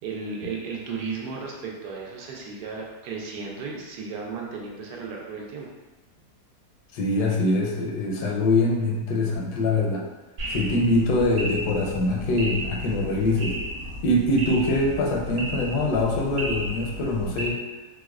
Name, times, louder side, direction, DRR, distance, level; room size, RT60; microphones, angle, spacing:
voice 1, 0.0-5.7, right 4 dB, 85° right, -1 dB, 1.2 m, -34 dB
voice 2, 6.9-10.0 10.5-13.6 14.0-17.6, left 2 dB, 80° left, -1 dB, 1.2 m, -23 dB
sound 1, 10.4-17.5, right 1 dB, 65° right, 1.2 m, -34 dB
4.8 x 2.1 x 2.3 m, 1.2 s
omnidirectional pair, 1.8 m